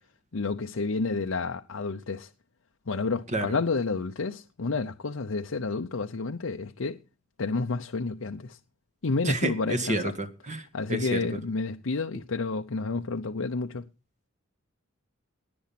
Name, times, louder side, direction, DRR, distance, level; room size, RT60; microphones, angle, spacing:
voice 1, 0.3-2.3 2.9-7.0 7.4-8.6 9.0-10.1 10.7-13.8, left 3 dB, 75° left, 0.7 m, -30 dB
voice 2, 9.3-11.3, right 2 dB, 35° right, 1.9 m, -30 dB
19.0 x 7.0 x 5.9 m
head